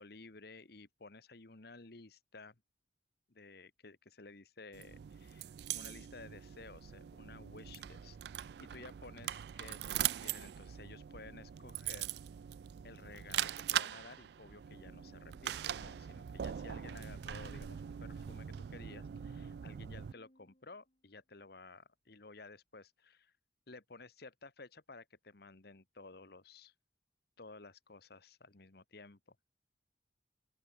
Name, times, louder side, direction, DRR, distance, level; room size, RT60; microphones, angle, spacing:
voice 1, 0.0-2.6 3.3-12.1 12.8-18.5 18.7-23.3 23.7-26.7 27.4-29.4, left 3 dB, 55° left, 1.3 m, -54 dB
sound 1, 4.7-20.1, right 11 dB, 60° right, 0.3 m, -41 dB
Organ, 14.7-21.2, equal, 35° left, 4.5 m, -67 dB
open air
head